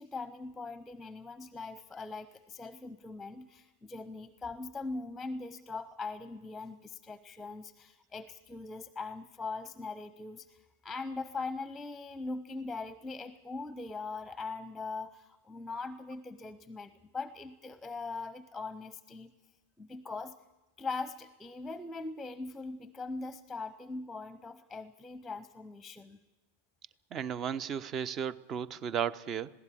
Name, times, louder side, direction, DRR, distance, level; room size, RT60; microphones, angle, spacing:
voice 1, 0.0-19.3 19.8-20.3 20.8-26.2, left 3 dB, 10° left, 16 dB, 0.8 m, -41 dB
voice 2, 27.1-29.5, right 8 dB, 30° right, 21 dB, 0.7 m, -34 dB
20.5 x 16.5 x 8.6 m, 1.1 s
figure-of-eight pair, 90°, 0 cm